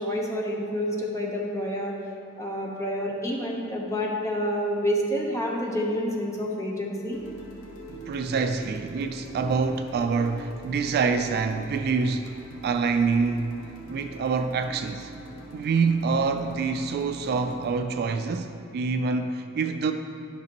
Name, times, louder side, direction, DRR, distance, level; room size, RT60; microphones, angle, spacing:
voice 1, 0.0-1.9 2.4-7.2, equal, 15° left, -2 dB, 0.9 m, -28 dB
sound 1, 7.1-17.8, right 2 dB, 70° left, 1.3 m, -44 dB
voice 2, 7.9-12.3 12.6-13.6 13.9-15.1 15.5-19.9, right 4 dB, 50° right, 8 dB, 0.3 m, -26 dB
11.0 x 5.8 x 3.0 m, 2.7 s
head